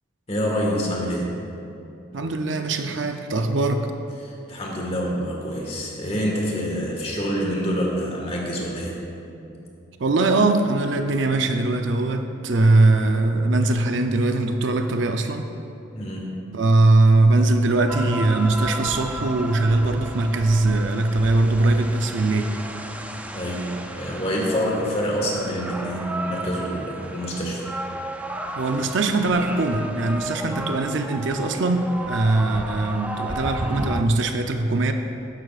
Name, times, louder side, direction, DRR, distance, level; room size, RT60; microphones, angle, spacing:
voice 1, 0.3-1.4 4.2-9.0 15.9-16.4 23.3-27.6, equal, 30° left, -2 dB, 1.6 m, -26 dB
voice 2, 2.1-3.9 10.0-15.5 16.5-22.5 28.6-34.9, right 2 dB, 65° right, 6 dB, 0.6 m, -21 dB
sound 1, 17.9-34.0, right 1 dB, 5° right, 0.3 m, -34 dB
12.5 x 10.5 x 2.5 m, 2.8 s
head